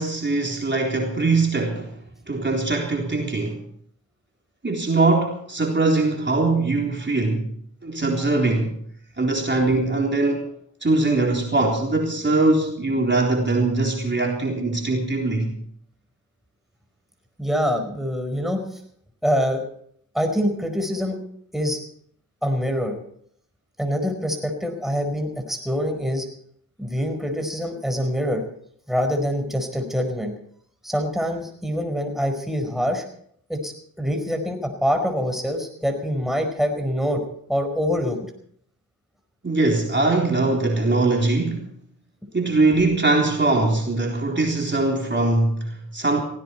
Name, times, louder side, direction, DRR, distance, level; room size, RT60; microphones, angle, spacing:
voice 1, 0.0-1.9 2.3-3.6 4.6-7.5 7.8-8.7 9.2-10.5 10.8-15.5 39.4-41.7 42.3-46.2, right 2 dB, 30° right, 0 dB, 3.8 m, -21 dB
voice 2, 17.4-18.8 19.2-19.6 20.1-21.2 21.5-21.8 22.4-23.0 23.8-26.3 26.8-28.4 28.9-30.3 30.8-33.0 33.5-37.2 37.5-38.3, equal, ahead, 5 dB, 4.9 m, -25 dB
18.5 x 17.0 x 4.5 m, 0.64 s
cardioid pair, 50°, 37 cm